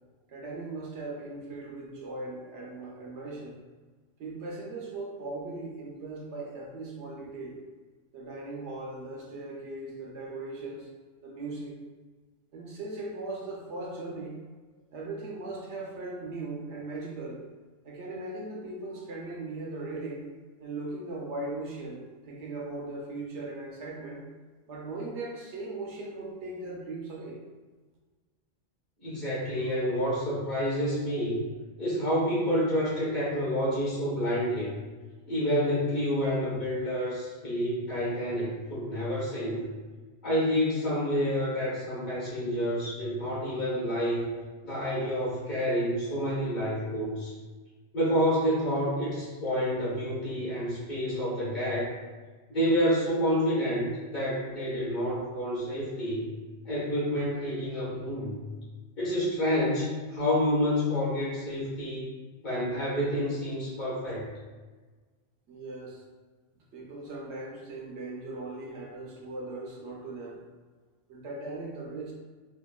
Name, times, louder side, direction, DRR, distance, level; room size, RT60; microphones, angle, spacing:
voice 1, 0.3-3.6 4.2-7.6 8.1-10.9 11.2-11.8 12.5-14.4 14.9-17.4 17.8-20.3 20.6-24.2 24.7-27.4 65.5-66.0 66.7-70.4 71.1-72.1, right 2 dB, 70° right, -2 dB, 0.8 m, -38 dB
voice 2, 29.0-31.4 31.8-34.7 35.3-39.6 40.2-44.2 44.6-47.3 47.9-51.9 52.5-56.3 56.6-58.4 59.0-62.0 62.4-64.3, equal, 40° left, -9 dB, 1.2 m, -28 dB
3.5 x 2.3 x 2.2 m, 1.4 s
omnidirectional pair, 1.2 m